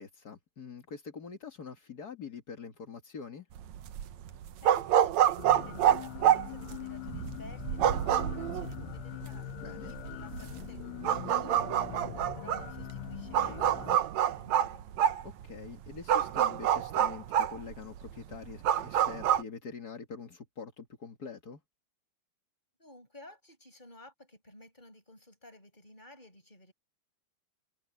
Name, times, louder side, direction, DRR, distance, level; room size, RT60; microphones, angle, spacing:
voice 1, 0.0-3.5 9.6-9.9 15.2-21.6, left 5 dB, 40° left, 1.4 m, -45 dB
sound 1, 3.6-19.4, right 10 dB, 85° right, 1.5 m, -28 dB
voice 2, 4.6-14.9 22.8-26.7, left 1 dB, 10° left, 6.9 m, -54 dB
sound 2, 5.4-14.0, left 20 dB, 85° left, 2.7 m, -43 dB
omnidirectional pair, 4.7 m